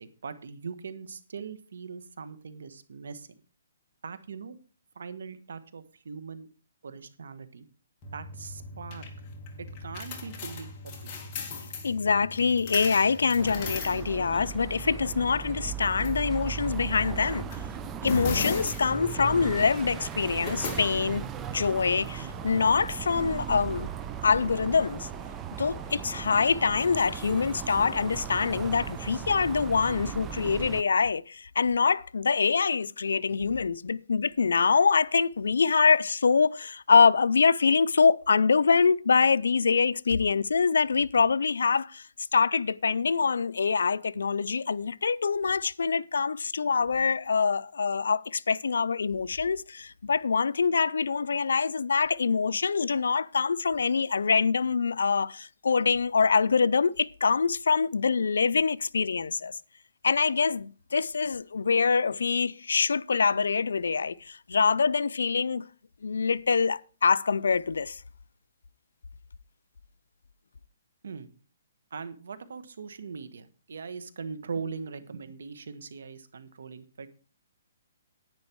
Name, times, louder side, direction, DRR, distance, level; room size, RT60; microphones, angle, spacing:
voice 1, 0.0-3.3 4.0-4.6 4.9-6.5 6.8-7.7 8.1-9.1 9.6-11.1 71.0-71.3 71.9-77.1, right 5 dB, 75° right, 1.4 m, -40 dB
sound 1, 8.0-22.7, left 3 dB, 25° left, 2.3 m, -39 dB
voice 2, 11.8-17.5 18.0-21.3 21.5-23.9 24.2-25.1 25.6-42.0 42.3-59.6 60.0-65.6 66.0-68.0, left 5 dB, 90° left, 0.5 m, -25 dB
sound 2, 13.4-30.8, right 9 dB, 15° right, 0.5 m, -37 dB
sound 3, 21.6-29.6, right 5 dB, 40° right, 2.1 m, -50 dB
10.5 x 9.6 x 4.6 m
hypercardioid pair, 160°, 0 cm